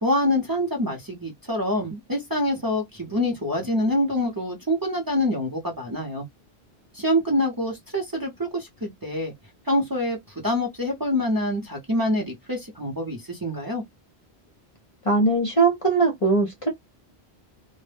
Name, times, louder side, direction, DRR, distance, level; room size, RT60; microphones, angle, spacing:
voice 1, 0.0-6.3 6.9-9.3 9.7-10.2 10.4-13.8, left 1 dB, 25° right, 0.6 m, -25 dB
voice 2, 15.0-16.7, right 3 dB, 40° left, 0.6 m, -20 dB
2.1 x 2.0 x 3.2 m
omnidirectional pair, 1.0 m